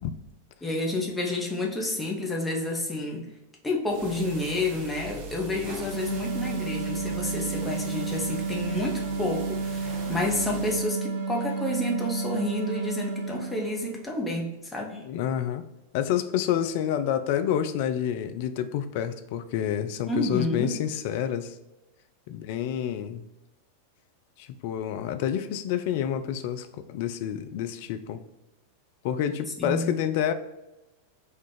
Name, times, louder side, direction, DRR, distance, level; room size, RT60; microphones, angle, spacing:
voice 1, 0.6-3.3 3.6-15.0 20.1-20.7 29.6-29.9, left 2 dB, 10° left, -1 dB, 0.8 m, -30 dB
sound 1, 3.8-10.9, right 3 dB, 45° right, 0.7 m, -40 dB
sound 2, 5.9-14.1, right 4 dB, 85° right, 0.8 m, -31 dB
voice 2, 14.9-15.6 15.9-21.5 22.3-23.2 24.4-28.2 29.0-30.3, left 10 dB, 50° left, 10 dB, 0.4 m, -28 dB
4.4 x 2.4 x 3.7 m, 0.99 s
figure-of-eight pair, 90°, 0 cm